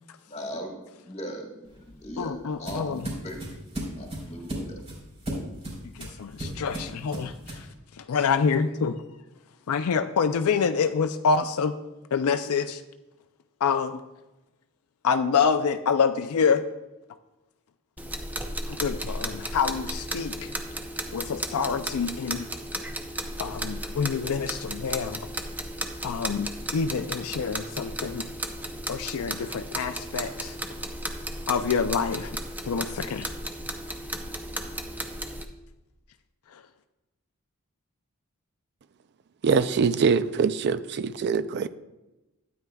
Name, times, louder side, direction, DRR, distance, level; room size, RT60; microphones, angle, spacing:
voice 1, 0.3-0.7 1.0-2.3 2.6-3.4 4.0-4.8, equal, 30° left, 1.9 m, -38 dB
sound 1, 1.7-7.7, right 1 dB, 30° right, 3.5 m, -36 dB
voice 2, 2.2-3.1 6.0-7.3 8.1-9.0 9.7-11.7 12.1-12.8 13.6-14.0 15.0-16.6 18.8-20.5 21.1-22.5 23.4-25.2 26.0-28.2 28.9-30.5 31.5-32.3 32.7-33.3, left 6 dB, 70° left, 0.4 m, -26 dB
sound 2, 18.0-35.4, right 1 dB, 10° right, 0.6 m, -35 dB
voice 3, 39.4-41.7, right 5 dB, 50° right, 0.4 m, -23 dB
12.5 x 9.5 x 2.3 m
head